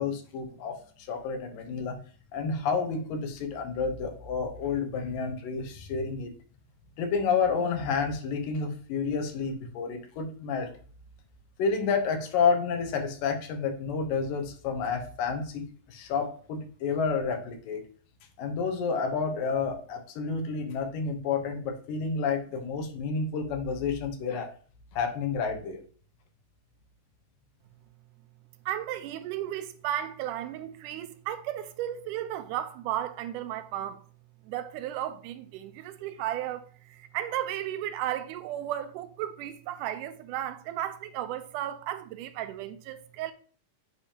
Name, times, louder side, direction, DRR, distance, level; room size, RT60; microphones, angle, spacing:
voice 1, 0.0-2.0 2.3-6.3 7.0-10.7 11.6-17.8 18.4-24.5 24.9-25.8, left 5 dB, 90° left, 2.7 m, -30 dB
voice 2, 28.7-34.0 34.4-43.3, right 12 dB, 80° right, 2.0 m, -34 dB
8.2 x 5.0 x 2.8 m
omnidirectional pair, 3.8 m